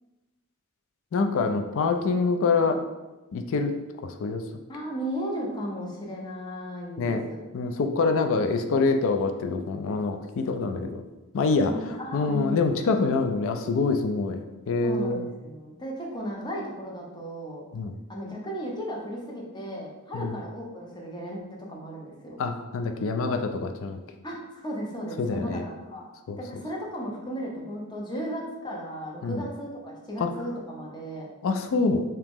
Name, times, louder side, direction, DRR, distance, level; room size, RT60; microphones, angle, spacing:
voice 1, 1.1-2.8 3.3-3.7 4.0-4.4 7.0-7.2 7.5-11.0 11.3-15.3 17.7-18.0 20.1-20.3 22.4-24.0 25.2-25.6 26.3-26.4 29.2-29.4 30.2-30.3 31.4-32.0, left 4 dB, 60° left, 6 dB, 0.4 m, -25 dB
voice 2, 4.7-7.4 11.6-12.6 14.8-17.6 18.1-22.4 24.2-26.0 26.4-31.3, equal, 20° left, -2 dB, 0.7 m, -35 dB
3.0 x 2.8 x 3.5 m, 1.1 s
head